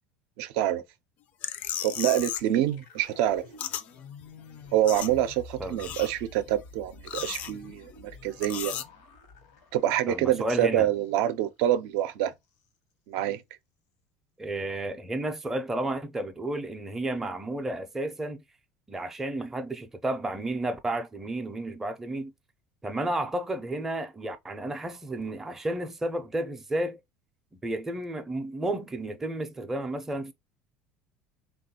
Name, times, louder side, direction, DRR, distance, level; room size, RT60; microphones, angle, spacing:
voice 1, 0.4-0.8 1.8-3.4 4.7-8.7 9.7-12.3 13.1-13.4, right 12 dB, 75° right, 0.4 m, -26 dB
sound 1, 1.4-2.6 2.8-3.9 4.2-4.3 4.5-5.4 5.7-6.4 6.9-7.9 8.4-8.8, left 10 dB, 50° left, 0.4 m, -35 dB
sound 2, 2.4-11.5 11.8-11.9 12.3-12.7, left 2 dB, 80° left, 1.0 m, -50 dB
voice 2, 10.1-10.9 14.4-18.4 18.9-22.3 22.8-27.0 27.5-30.3, right 1 dB, 10° right, 0.4 m, -32 dB
3.3 x 2.3 x 2.7 m
supercardioid pair, 125°, 3 cm